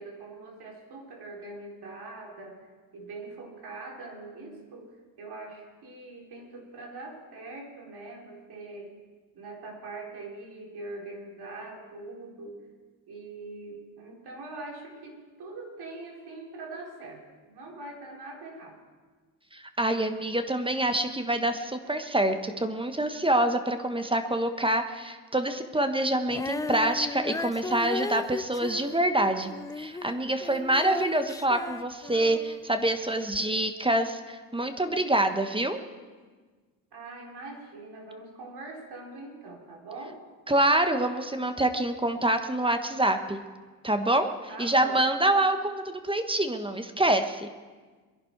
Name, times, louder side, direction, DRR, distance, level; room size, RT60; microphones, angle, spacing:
voice 1, 0.0-8.9 9.3-12.6 13.1-18.8 36.9-40.2 44.5-45.0, right 2 dB, 55° right, -1 dB, 4.3 m, -43 dB
voice 2, 19.5-29.5 29.8-35.8 40.5-43.4 43.8-44.3 44.6-47.5, right 1 dB, 10° right, 8 dB, 1.3 m, -26 dB
Female singing, 26.3-32.6 33.3-33.4, left 3 dB, 10° left, 0.4 m, -36 dB
22.5 x 11.0 x 4.7 m, 1.4 s
hypercardioid pair, 60°, 45 cm